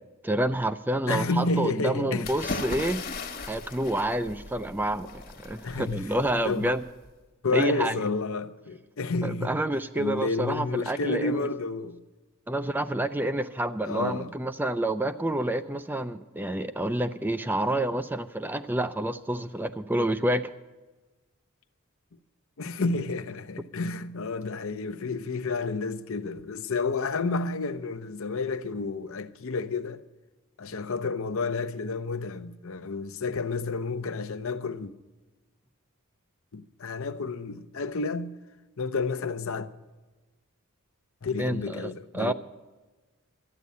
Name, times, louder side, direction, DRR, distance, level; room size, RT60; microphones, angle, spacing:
voice 1, 0.2-3.0 3.5-6.8 7.5-8.0 9.2-11.5 12.5-20.5 41.4-42.3, right 1 dB, 10° right, 0.4 m, -28 dB
voice 2, 1.1-2.3 5.6-6.1 6.4-6.7 7.4-9.6 9.9-12.0 13.8-14.3 22.6-30.0 30.6-34.9 36.5-38.3 38.8-39.7 41.2-42.3, left 3 dB, 65° left, 0.7 m, -30 dB
sound 1, 2.2-7.1, left 3 dB, 40° left, 1.2 m, -38 dB
13.0 x 9.3 x 8.3 m
head